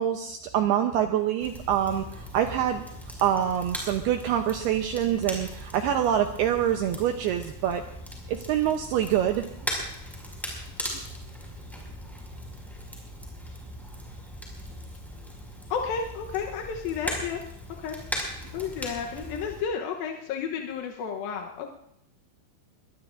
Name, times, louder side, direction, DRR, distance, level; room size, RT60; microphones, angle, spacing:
voice 1, 0.0-2.8 3.2-7.8 8.3-9.4, right 10 dB, 80° right, 5 dB, 2.3 m, -25 dB
Crackle, 1.4-19.6, equal, ahead, 4.7 m, -39 dB
voice 2, 15.7-17.4 17.8-18.0 18.5-21.7, left 6 dB, 75° left, 1 dB, 2.3 m, -32 dB
22.5 x 22.0 x 2.6 m, 0.75 s
omnidirectional pair, 5.4 m